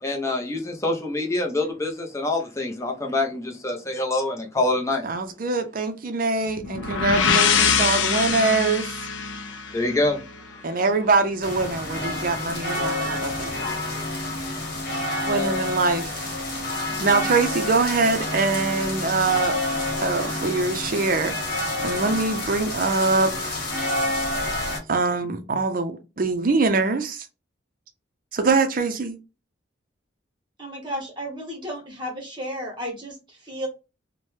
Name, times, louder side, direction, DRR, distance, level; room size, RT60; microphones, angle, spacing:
voice 1, 0.0-5.0 7.8-7.9 9.7-10.2 10.5-10.6 12.1-13.2 13.5-13.8, left 2 dB, 15° left, 0.6 m, -26 dB
voice 2, 5.0-9.0 10.6-13.5 15.2-16.2 16.7-19.6 20.0-23.6 24.9-27.3 28.3-29.2, right 3 dB, 45° right, 0.5 m, -23 dB
sound 1, 6.6-10.4, left 6 dB, 70° left, 0.4 m, -23 dB
sound 2, 11.4-24.8, left 2 dB, 50° left, 1.2 m, -28 dB
voice 3, 30.6-33.7, equal, 25° right, 1.0 m, -33 dB
2.9 x 2.1 x 3.1 m
head